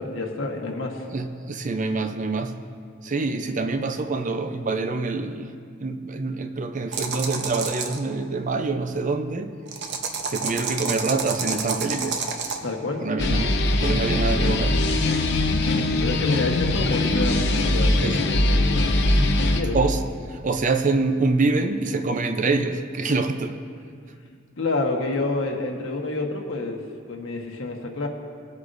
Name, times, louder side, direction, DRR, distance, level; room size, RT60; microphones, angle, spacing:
voice 1, 0.0-1.0 12.6-13.1 16.0-18.8 19.4-19.8 24.6-26.8 27.1-28.1, left 2 dB, 75° left, 1 dB, 1.3 m, -28 dB
voice 2, 1.1-2.6 3.0-9.5 10.3-12.2 13.0-13.6 13.8-14.8 16.8-16.9 18.0-18.2 19.7-20.0 20.3-23.6, right 3 dB, 40° right, 7 dB, 0.5 m, -26 dB
sound 1, 6.9-8.0 9.7-12.6, right 5 dB, 60° right, 0.8 m, -29 dB
sound 2, 13.2-19.6, left 2 dB, 60° left, 0.7 m, -21 dB
19.5 x 8.1 x 2.6 m, 2.2 s
head